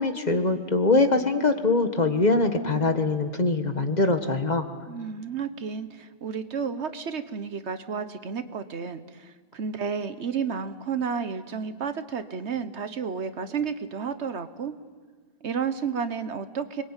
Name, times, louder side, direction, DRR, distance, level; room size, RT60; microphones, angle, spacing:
voice 1, 0.0-4.7, left 3 dB, 35° left, 7 dB, 1.5 m, -23 dB
voice 2, 4.9-14.7 15.4-16.8, right 6 dB, 65° right, 11 dB, 1.3 m, -31 dB
29.5 x 22.0 x 9.0 m, 1.5 s
omnidirectional pair, 1.2 m